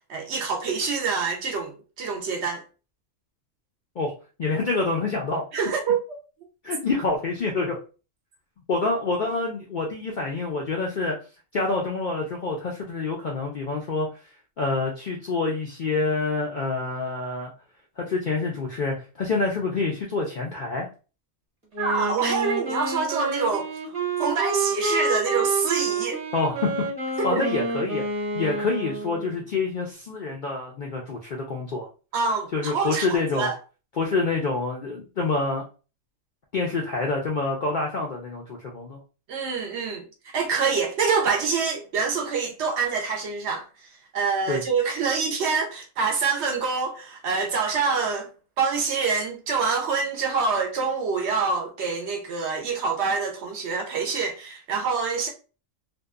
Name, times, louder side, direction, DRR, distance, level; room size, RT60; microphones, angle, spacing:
voice 1, 0.1-1.7 2.0-2.6 5.5-6.0 21.8-23.7 24.2-26.2 27.2-27.4 32.1-33.6 39.3-40.0 40.3-43.7 44.1-48.3 48.6-55.3, right 5 dB, 65° right, 0.8 m, -26 dB
voice 2, 4.4-5.4 6.6-7.8 8.7-11.2 11.5-14.1 14.6-17.5 18.0-20.9 26.3-26.7 27.2-28.0 28.3-31.9 32.5-33.5 34.0-35.6 36.5-39.0 44.5-44.6, left 3 dB, 65° left, 0.5 m, -27 dB
Wind instrument woodwind instrument, 21.7-29.4, right 3 dB, 30° right, 1.0 m, -28 dB
2.7 x 2.2 x 2.3 m
omnidirectional pair, 1.3 m